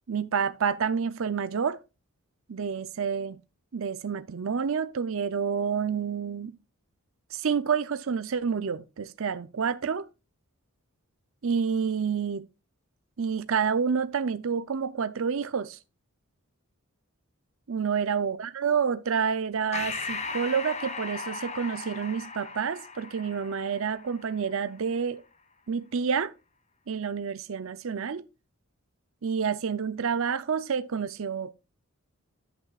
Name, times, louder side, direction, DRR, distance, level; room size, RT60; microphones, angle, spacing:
voice 1, 0.1-1.8 2.5-3.4 3.7-6.5 7.3-10.1 11.4-12.5 13.2-15.8 17.7-25.2 25.7-26.3 26.9-28.2 29.2-31.5, right 6 dB, 65° right, 0.5 m, -28 dB
Breathing, 19.7-24.6, left 4 dB, 30° left, 1.0 m, -37 dB
11.0 x 8.4 x 2.4 m
head